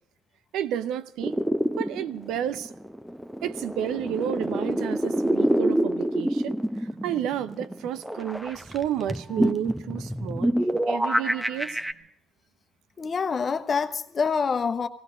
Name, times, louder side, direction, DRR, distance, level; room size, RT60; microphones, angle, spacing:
voice 1, 0.5-1.4 1.7-2.7 3.4-10.5 10.9-11.8, right 10 dB, 75° right, 0.6 m, -31 dB
sound 1, 1.2-11.9, equal, 5° right, 0.9 m, -27 dB
voice 2, 13.0-14.9, left 5 dB, 45° left, 1.1 m, -26 dB
17.5 x 16.5 x 5.0 m
supercardioid pair, 60°, 0 cm